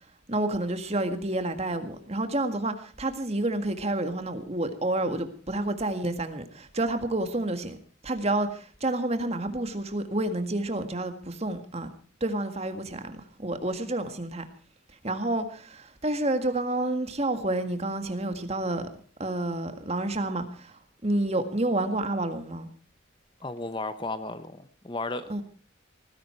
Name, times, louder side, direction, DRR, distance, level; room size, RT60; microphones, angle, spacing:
voice 1, 0.3-7.8 8.0-11.9 12.2-14.5 15.0-18.9 19.2-22.7 25.3-25.4, right 2 dB, 30° right, 1.9 m, -29 dB
voice 2, 23.4-25.4, left 2 dB, 25° left, 0.9 m, -34 dB
19.5 x 16.0 x 4.5 m
head